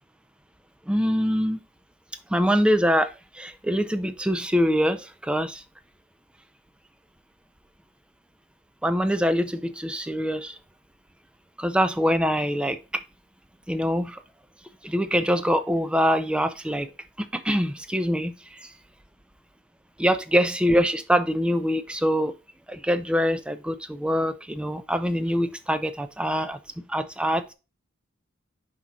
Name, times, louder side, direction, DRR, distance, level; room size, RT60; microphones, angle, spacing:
voice 1, 0.9-1.6 2.3-5.6 8.8-10.6 11.6-13.0 13.7-14.2 14.8-16.9 17.2-18.7 20.0-22.3 22.7-27.5, equal, 5° right, 0.4 m, -24 dB
6.0 x 4.4 x 3.8 m
head